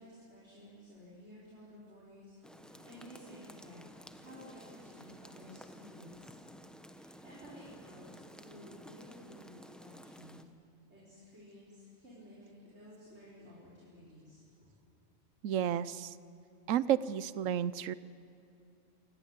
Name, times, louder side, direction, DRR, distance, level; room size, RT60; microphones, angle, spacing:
voice 1, 0.0-3.8 4.1-6.3 6.7-10.5 10.9-14.7, equal, 55° right, -7 dB, 5.8 m, -54 dB
sound 1, 2.4-10.4, equal, ahead, 0.9 m, -53 dB
voice 2, 15.4-16.1 16.7-17.9, right 10 dB, 70° right, 17 dB, 1.1 m, -31 dB
26.5 x 20.0 x 8.4 m, 2.8 s
omnidirectional pair, 1.4 m